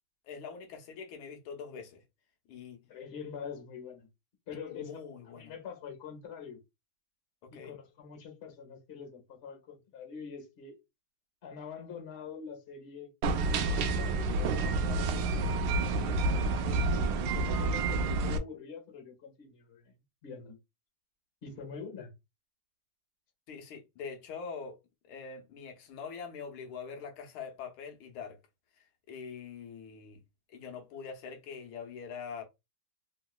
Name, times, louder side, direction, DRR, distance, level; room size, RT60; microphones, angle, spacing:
voice 1, 0.2-2.0 2.5-2.8 4.7-5.5 7.4-7.7 23.5-24.8 25.0-28.4 29.1-30.2 30.5-32.4, left 6 dB, 90° left, 1.6 m, -43 dB
voice 2, 2.9-4.1 4.5-4.9 5.2-6.6 7.5-10.8 11.4-13.1 13.9-15.5 15.8-19.9 20.2-20.6 21.4-22.1, left 6 dB, 40° left, 1.1 m, -45 dB
sound 1, 13.2-18.4, right 3 dB, 75° right, 1.2 m, -29 dB
3.6 x 2.9 x 2.2 m
omnidirectional pair, 2.3 m